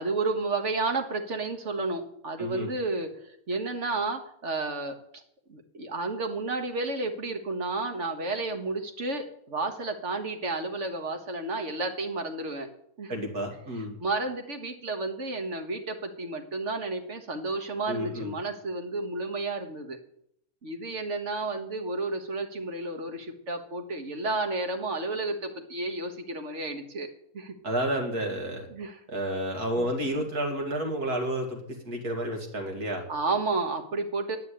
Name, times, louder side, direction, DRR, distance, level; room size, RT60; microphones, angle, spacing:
voice 1, 0.0-3.1 3.5-5.2 5.5-12.7 13.0-13.1 14.0-20.0 20.6-27.1 27.3-27.5 28.7-29.0 29.8-29.9 33.1-34.4, right 3 dB, 50° right, 5 dB, 1.7 m, -31 dB
voice 2, 2.4-2.7 13.1-14.0 17.9-18.3 27.6-28.7 29.1-33.0, right 1 dB, 80° right, 2 dB, 2.8 m, -30 dB
9.7 x 8.5 x 8.5 m, 0.71 s
omnidirectional pair, 1.6 m